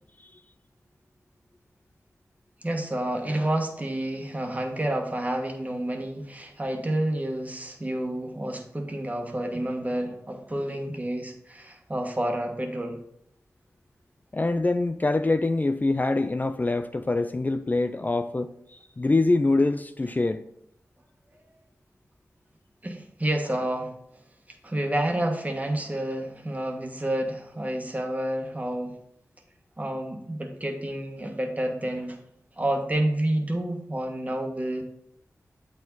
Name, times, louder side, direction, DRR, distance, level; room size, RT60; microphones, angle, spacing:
voice 1, 2.6-13.0 22.8-23.9 24.5-29.0 29.8-32.2 32.6-34.8, right 1 dB, 25° right, 1.5 m, -29 dB
voice 2, 14.3-20.4, left 2 dB, 30° left, 0.4 m, -24 dB
8.0 x 4.8 x 4.0 m
cardioid pair, 40°, 6 cm